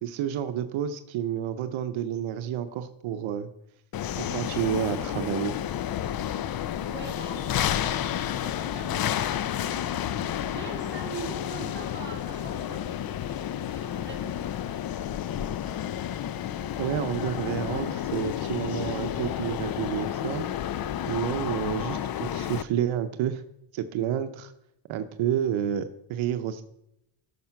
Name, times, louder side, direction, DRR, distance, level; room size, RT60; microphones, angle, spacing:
voice 1, 0.0-3.5 4.2-5.6 16.8-20.5 21.1-23.4 23.7-24.5 24.9-26.6, right 10 dB, 85° right, 9 dB, 0.8 m, -30 dB
sound 1, 3.9-22.6, left 10 dB, 50° left, 0.6 m, -31 dB
voice 2, 6.9-9.9 10.2-14.3, right 4 dB, 25° right, -1 dB, 2.9 m, -43 dB
12.0 x 6.7 x 5.8 m, 0.83 s
cardioid pair, 115°, 46 cm